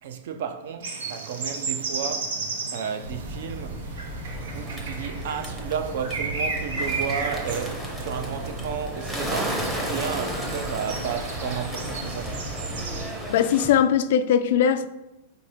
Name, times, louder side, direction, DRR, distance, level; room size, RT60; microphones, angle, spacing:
voice 1, 0.0-2.4 2.7-3.9 4.6-12.4, right 7 dB, 55° right, 0.6 m, -32 dB
sound 1, 0.8-13.1, right 4 dB, 90° right, 1.1 m, -34 dB
sound 2, 3.0-13.0, right 1 dB, 25° right, 1.3 m, -37 dB
Bird, 4.2-13.7, right 1 dB, 5° right, 0.7 m, -34 dB
voice 2, 13.3-14.9, left 8 dB, 50° left, 0.3 m, -20 dB
4.5 x 4.3 x 4.9 m
supercardioid pair, 175°, 0 cm